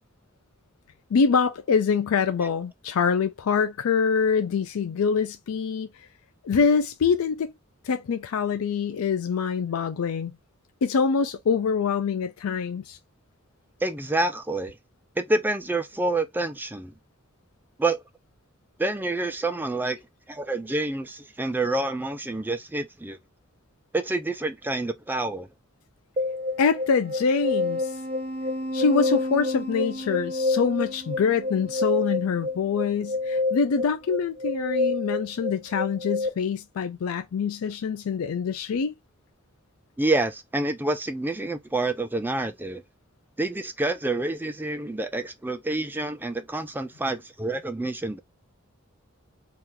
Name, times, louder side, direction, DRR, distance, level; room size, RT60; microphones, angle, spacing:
voice 1, 1.1-5.9 6.4-7.5 7.8-10.3 10.8-13.0 26.6-27.9 28.7-38.9, left 5 dB, 85° left, 0.4 m, -25 dB
voice 2, 13.8-14.8 15.2-16.9 17.8-18.0 18.8-20.0 20.3-23.2 23.9-25.5 40.0-42.8 43.4-48.2, right 2 dB, 10° right, 0.4 m, -28 dB
sound 1, 26.2-36.3, left 2 dB, 30° right, 0.8 m, -28 dB
2.9 x 2.4 x 3.7 m
head